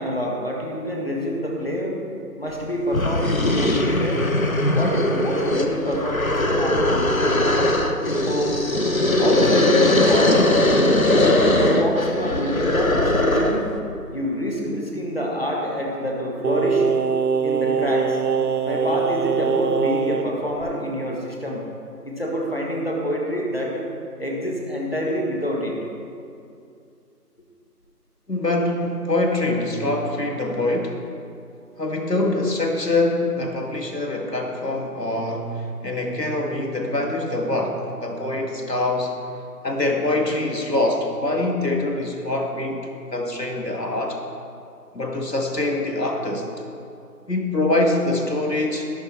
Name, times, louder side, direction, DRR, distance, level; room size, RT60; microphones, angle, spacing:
voice 1, 0.0-2.0 2.4-4.2 4.7-7.5 8.0-8.6 9.2-10.9 11.5-13.7 14.1-16.9 17.4-18.2 18.6-21.6 22.0-23.9 24.2-25.8, equal, 35° left, -2 dB, 1.6 m, -26 dB
sound 1, 2.5-2.6 2.9-13.7, left 1 dB, 55° left, 1.0 m, -20 dB
Singing, 16.4-20.3 20.6-20.7, right 6 dB, 70° right, 0.5 m, -22 dB
voice 2, 28.3-31.0 31.8-39.2 39.6-44.2 44.9-46.5 47.3-48.9, left 2 dB, 80° left, 1 dB, 2.1 m, -24 dB
16.5 x 6.1 x 4.4 m, 2.5 s
figure-of-eight pair, 170°, 48 cm